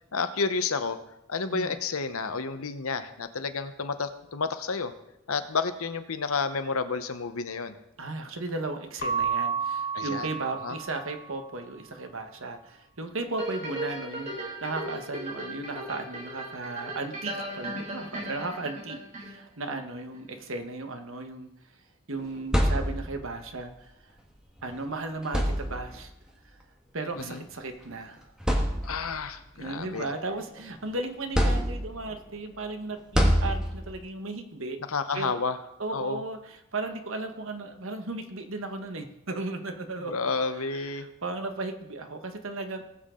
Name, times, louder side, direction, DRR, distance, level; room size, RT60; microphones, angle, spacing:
voice 1, 0.1-1.0 1.3-4.9 5.3-7.8 9.9-10.3 10.6-10.8 27.2-27.4 28.8-30.0 34.9-35.6 35.9-36.2 40.0-41.1, left 4 dB, 85° left, 9 dB, 1.0 m, -30 dB
voice 2, 8.0-21.5 22.1-24.1 24.6-26.1 26.4-26.6 26.9-28.2 29.6-34.8 35.1-35.4 35.8-40.3 40.7-42.8, right 2 dB, 70° right, 6 dB, 1.3 m, -35 dB
Keyboard (musical) / Bell, 9.0-11.4, right 6 dB, 45° left, 0.7 m, -31 dB
sound 1, 13.4-19.7 20.1-20.2, right 1 dB, 30° right, 3.3 m, -37 dB
sound 2, 22.2-23.3 24.6-24.7 25.2-26.1 27.2-27.4 27.9-28.0 28.4-29.2 29.7-30.8 31.3-32.1 33.1-34.0, equal, 5° right, 1.4 m, -26 dB
19.0 x 7.4 x 3.8 m, 0.84 s
head